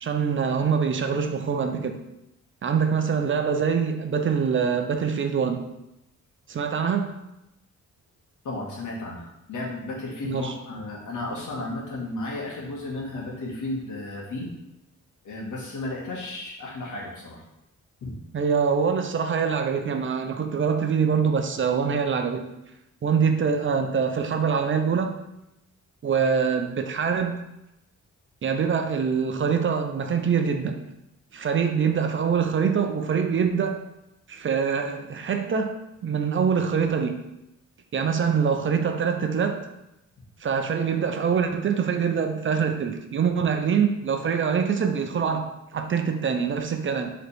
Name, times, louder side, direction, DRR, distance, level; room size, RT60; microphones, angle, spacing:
voice 1, 0.0-2.0 2.6-5.6 6.5-7.1 10.2-10.5 18.3-22.4 23.0-25.2 26.0-27.4 28.4-30.8 31.3-33.8 34.3-35.8 36.0-37.2 37.9-39.6 40.4-47.1, right 6 dB, 40° right, 6 dB, 0.6 m, -24 dB
voice 2, 8.4-14.5 15.2-17.4 18.0-18.1, left 2 dB, 85° left, -2 dB, 1.8 m, -33 dB
7.2 x 3.9 x 3.4 m, 0.89 s
wide cardioid pair, 155°, 30 cm